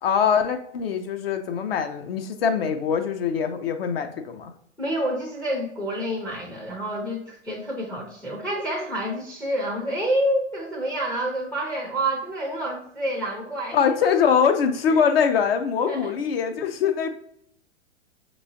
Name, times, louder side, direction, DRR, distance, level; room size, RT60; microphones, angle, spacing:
voice 1, 0.0-4.5 13.7-17.1, left 7 dB, 50° left, 5 dB, 0.6 m, -23 dB
voice 2, 4.8-14.0 15.0-15.1 15.9-16.1, right 1 dB, 5° left, -1 dB, 0.5 m, -28 dB
5.9 x 3.0 x 2.6 m, 0.68 s
figure-of-eight pair, 105°, 37 cm